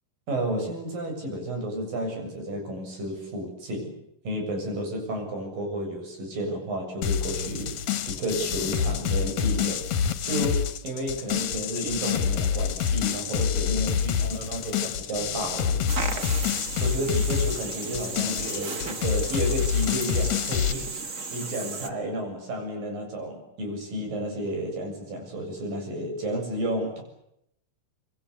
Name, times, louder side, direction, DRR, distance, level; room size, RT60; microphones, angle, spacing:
voice 1, 0.3-4.0 4.2-16.3 16.8-27.0, right 1 dB, 85° right, 3 dB, 9.1 m, -32 dB
sound 1, 7.0-20.7, left 8 dB, 60° left, 2.5 m, -27 dB
sound 2, 15.9-21.9, right 4 dB, 35° right, 1.4 m, -35 dB
25.5 x 24.5 x 8.4 m, 0.77 s
omnidirectional pair, 3.8 m